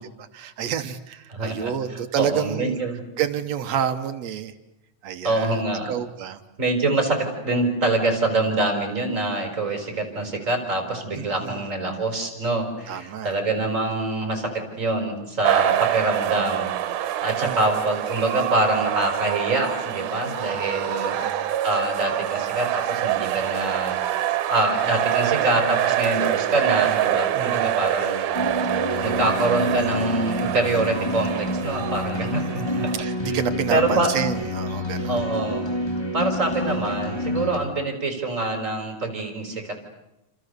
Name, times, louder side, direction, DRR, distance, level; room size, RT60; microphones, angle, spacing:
voice 1, 0.0-2.8 3.2-4.5 5.0-6.4 11.2-11.6 12.9-13.4 17.4-17.6 20.9-21.5 27.3-27.8 32.4-35.2, right 9 dB, 65° right, 9 dB, 2.2 m, -29 dB
voice 2, 1.3-3.0 5.2-5.9 6.6-16.7 17.0-21.2 21.6-24.0 24.5-28.4 29.0-32.9 33.2-33.4 33.7-34.1 35.1-35.7 36.1-39.8, right 2 dB, 25° right, 4 dB, 5.0 m, -25 dB
sound 1, 15.4-33.0, right 12 dB, 80° right, 2.6 m, -25 dB
sound 2, 28.3-37.6, left 1 dB, 10° left, 1.5 m, -28 dB
28.5 x 27.0 x 6.8 m, 0.92 s
omnidirectional pair, 3.6 m